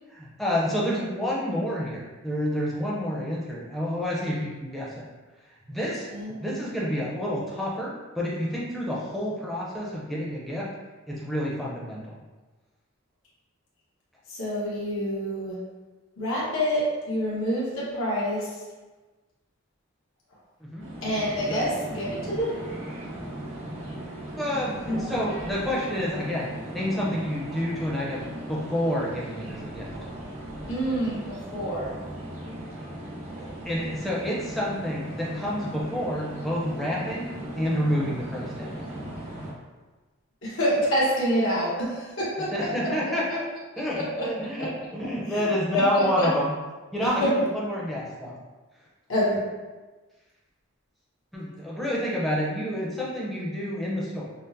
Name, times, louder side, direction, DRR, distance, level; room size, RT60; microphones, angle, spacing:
voice 1, 0.1-5.0 5.7-6.1 6.4-10.7 11.1-12.2 20.6-20.9 21.4-21.6 24.4-29.9 33.3-38.8 42.5-43.4 43.8-46.5 46.9-48.3 51.3-54.3, equal, ahead, -6 dB, 0.6 m, -29 dB
voice 2, 6.1-6.7 14.3-15.6 16.2-18.5 21.0-22.6 24.9-25.2 30.7-31.9 40.4-42.5 43.9-44.3 44.6-44.7 45.3-45.4 45.7-46.3 47.2-47.3 49.1-49.4, equal, 70° left, -7 dB, 1.1 m, -27 dB
sound 1, 20.8-39.5, right 1 dB, 90° right, 1.5 m, -38 dB
5.6 x 2.0 x 2.6 m, 1.2 s
head